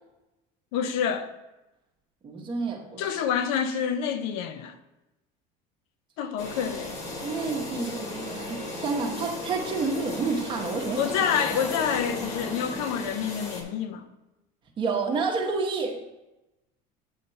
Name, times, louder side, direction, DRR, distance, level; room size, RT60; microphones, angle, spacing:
voice 1, 0.7-1.3 3.0-4.8 6.2-7.0 11.0-14.1, left 8 dB, 80° left, 0.6 m, -28 dB
voice 2, 2.2-3.2 7.2-11.6 14.8-16.0, right 4 dB, 25° right, 0.8 m, -30 dB
sound 1, 6.4-13.6, left 2 dB, 40° left, 1.1 m, -35 dB
7.9 x 2.9 x 5.4 m
cardioid pair, 170°, 19 cm